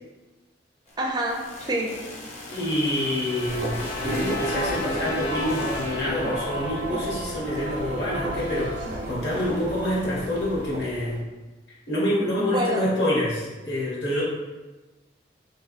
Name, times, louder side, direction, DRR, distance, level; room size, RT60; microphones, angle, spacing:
sound 1, 0.9-6.0, left 1 dB, 40° left, 0.7 m, -40 dB
voice 1, 1.0-2.0 12.4-12.9, right 1 dB, 25° right, 0 dB, 0.4 m, -27 dB
Trumpet, 2.3-7.0, left 3 dB, 85° left, 0.5 m, -37 dB
voice 2, 2.5-11.3 11.9-14.2, left 1 dB, 65° left, -6 dB, 1.2 m, -27 dB
sound 2, 3.4-11.2, right 1 dB, 80° right, 0.7 m, -32 dB
3.4 x 3.2 x 2.4 m, 1.2 s
head